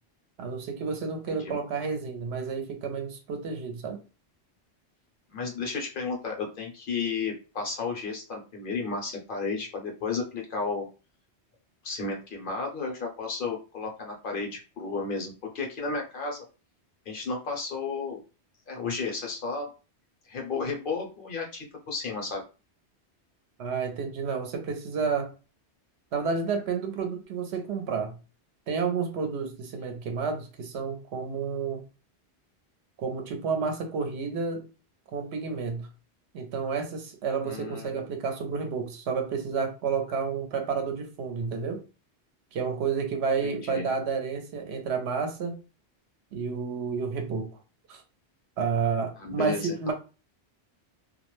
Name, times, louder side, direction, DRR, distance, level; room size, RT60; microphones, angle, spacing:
voice 1, 0.4-4.0 23.6-25.3 26.1-28.2 28.7-31.8 33.0-34.7 35.1-35.9 36.3-41.8 42.5-45.6 46.3-47.6 47.9-48.0 48.6-49.9, right 5 dB, 75° right, 0.8 m, -30 dB
voice 2, 1.3-1.6 5.3-10.9 11.8-16.4 17.1-18.2 18.7-19.7 20.2-22.4 37.4-38.0 43.4-43.8 49.2-49.9, left 4 dB, 55° left, 0.7 m, -33 dB
2.2 x 2.0 x 2.9 m
omnidirectional pair, 1.1 m